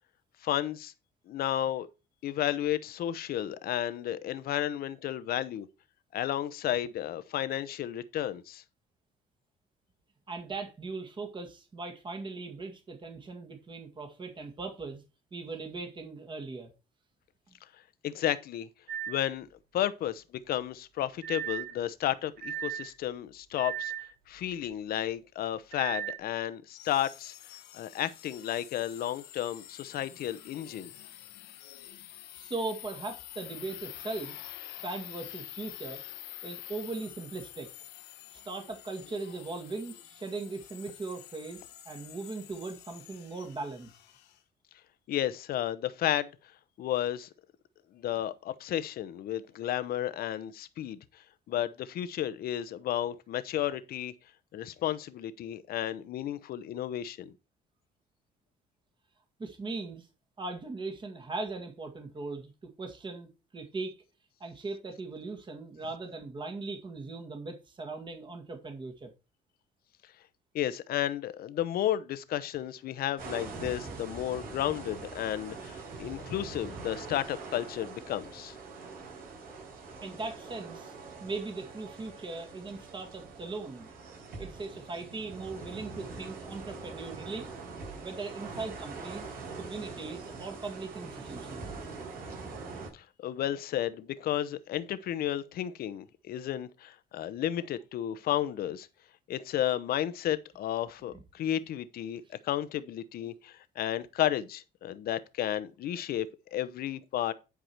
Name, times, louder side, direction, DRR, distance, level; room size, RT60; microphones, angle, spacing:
voice 1, 0.4-0.9 1.3-1.9 2.2-5.7 6.1-8.6 18.0-18.7 19.1-19.5 19.7-23.9 24.3-27.3 27.7-30.9 45.1-46.3 46.8-47.3 47.9-51.2 51.5-54.1 54.5-57.3 70.5-78.5 92.9-98.9 99.3-106.3 106.5-107.3, left 12 dB, 65° left, 0.9 m, -32 dB
voice 2, 10.3-15.0 15.3-16.7 32.3-34.4 34.7-36.0 36.4-37.7 38.3-43.9 59.4-60.1 60.4-64.0 64.4-69.1 75.9-76.1 80.0-80.9 81.2-83.9 84.4-87.5 88.0-89.3 89.6-91.7 101.1-101.2, right 3 dB, 30° right, 1.9 m, -39 dB
sound 1, 18.9-19.2 21.2-21.8 22.4-22.9 23.6-24.1 25.7-26.2, right 10 dB, 75° right, 3.6 m, -36 dB
sound 2, 26.7-44.4, left 13 dB, 85° left, 1.2 m, -48 dB
sound 3, 73.2-92.9, right 4 dB, 60° right, 5.8 m, -43 dB
10.5 x 4.9 x 4.4 m
cardioid pair, 110°, 17 cm